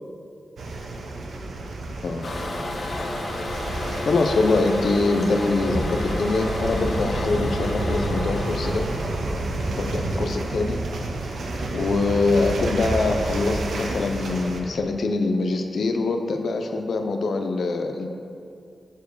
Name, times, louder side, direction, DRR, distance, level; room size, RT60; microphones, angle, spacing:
sound 1, 0.6-14.6, right 2 dB, 80° right, 0.8 m, -30 dB
Toilet flush, 2.2-9.3, left 1 dB, 50° left, 1.0 m, -31 dB
voice 1, 4.0-8.9 9.8-10.8 11.7-18.1, left 3 dB, 65° left, 5 dB, 0.6 m, -24 dB
7.1 x 4.6 x 6.6 m, 2.4 s
wide cardioid pair, 170°, 0 cm